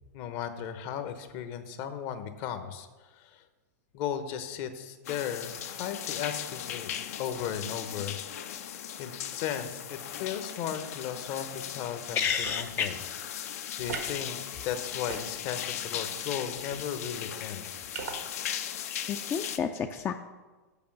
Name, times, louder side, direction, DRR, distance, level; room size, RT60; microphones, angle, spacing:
voice 1, 0.1-3.4 3.9-6.9 7.2-8.2 9.0-13.0 13.8-17.7, left 9 dB, 50° left, 9 dB, 0.9 m, -36 dB
sound 1, 5.1-19.6, left 10 dB, 65° left, 0.6 m, -38 dB
voice 2, 12.2-12.9 19.1-20.1, left 7 dB, 25° left, 6 dB, 0.4 m, -30 dB
sound 2, 12.3-12.7 13.8-14.1 14.9-15.7 16.6-16.8 17.9-18.2, right 5 dB, 85° right, 1.3 m, -39 dB
7.0 x 5.1 x 6.4 m, 1.3 s
hypercardioid pair, 105°, 9 cm